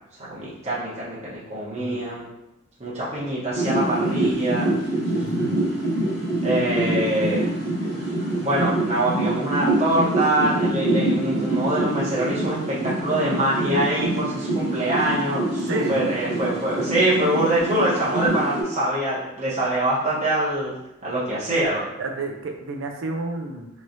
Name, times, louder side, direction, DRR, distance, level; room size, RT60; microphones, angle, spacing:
voice 1, 0.4-2.2 2.8-4.7 6.4-7.5 8.4-20.7 21.0-21.9, right 1 dB, 35° right, -10 dB, 1.0 m, -24 dB
sound 1, 3.5-18.6, right 2 dB, 30° left, 1.3 m, -25 dB
voice 2, 5.2-5.7 15.7-16.0 22.0-23.7, right 3 dB, 70° right, 3 dB, 0.5 m, -30 dB
3.1 x 3.0 x 2.6 m, 0.88 s
head